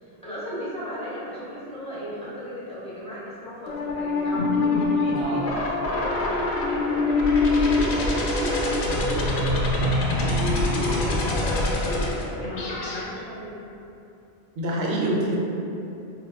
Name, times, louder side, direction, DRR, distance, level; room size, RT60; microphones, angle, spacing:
voice 1, 0.0-10.4 10.7-13.6, equal, 10° left, -10 dB, 0.5 m, -36 dB
sound 1, 3.7-13.0, left 2 dB, 80° left, 0.8 m, -24 dB
voice 2, 14.6-15.3, right 1 dB, 75° right, -3 dB, 0.8 m, -26 dB
4.5 x 2.2 x 2.2 m, 2.8 s
omnidirectional pair, 1.1 m